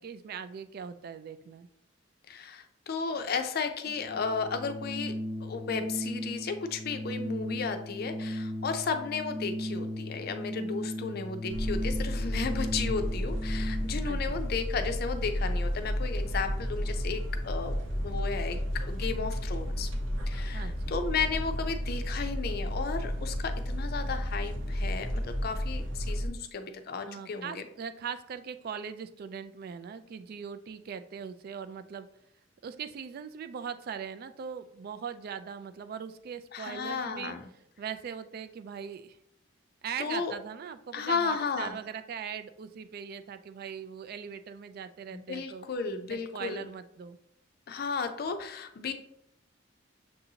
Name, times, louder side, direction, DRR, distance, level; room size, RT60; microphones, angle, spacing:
voice 1, 0.0-1.7 14.1-14.4 20.5-21.0 27.1-32.1 32.6-37.3 37.8-39.2 39.8-45.7 46.1-47.2, right 7 dB, 50° right, 11 dB, 0.3 m, -40 dB
voice 2, 2.3-5.1 5.4-19.9 20.3-27.6 36.5-37.4 40.0-40.3 40.9-41.8 45.1-46.7 47.7-48.9, left 5 dB, 55° left, 7 dB, 0.5 m, -34 dB
Organ, 3.8-14.1, equal, 25° right, 1.0 m, -37 dB
sound 1, 11.5-26.3, equal, 90° right, 0.7 m, -32 dB
6.7 x 2.7 x 2.8 m, 0.76 s
head